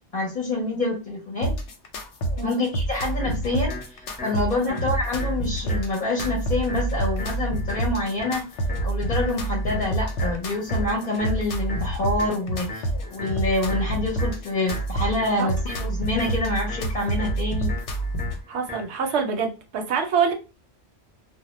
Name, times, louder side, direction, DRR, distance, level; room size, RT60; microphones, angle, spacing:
voice 1, 0.1-1.5 2.4-8.5 8.8-17.7, left 2 dB, 50° left, 0.7 m, -27 dB
sound 1, 1.4-18.4, right 1 dB, 90° left, 0.9 m, -28 dB
sound 2, 3.2-19.2, left 3 dB, 10° left, 0.6 m, -40 dB
voice 2, 18.5-20.3, right 6 dB, 75° right, 0.9 m, -25 dB
2.1 x 2.1 x 2.9 m
omnidirectional pair, 1.2 m